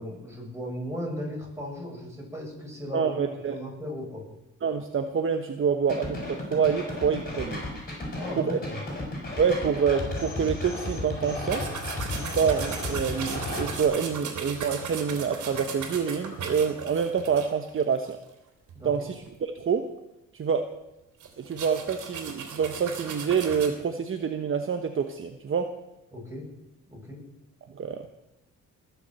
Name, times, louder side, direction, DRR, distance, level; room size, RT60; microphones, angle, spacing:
voice 1, 0.0-4.3 8.1-8.8 18.7-18.9 26.1-26.5 26.9-27.3, equal, 10° right, -2 dB, 7.6 m, -37 dB
voice 2, 2.9-3.5 4.6-7.6 8.4-8.6 9.4-11.6 12.1-18.2 18.8-19.9 20.3-20.7 21.4-25.7 27.7-28.0, right 6 dB, 45° right, 6 dB, 1.2 m, -27 dB
sound 1, 5.9-13.8, left 2 dB, 30° left, 6.6 m, -34 dB
sound 2, 11.5-18.3 18.7-18.8 19.1-19.3 21.2-23.7, right 6 dB, 75° right, 3.1 m, -37 dB
20.0 x 7.2 x 7.7 m, 0.91 s
cardioid pair, 90°, 30 cm